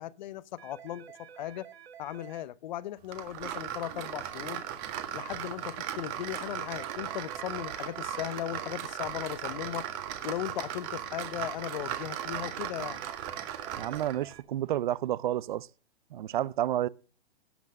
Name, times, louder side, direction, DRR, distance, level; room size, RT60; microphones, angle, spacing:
voice 1, 0.0-1.7 2.0-4.6 5.1-9.9 10.2-13.0, left 13 dB, 45° left, 0.7 m, -37 dB
sound 1, 0.6-2.4 6.6-8.4 12.6-14.4, right 8 dB, 70° right, 1.5 m, -50 dB
sound 2, 3.1-14.2, right 10 dB, 30° right, 1.6 m, -37 dB
voice 2, 13.8-15.7 16.1-16.9, right 12 dB, 50° right, 0.5 m, -30 dB
17.0 x 6.2 x 6.5 m
hypercardioid pair, 150°, 32 cm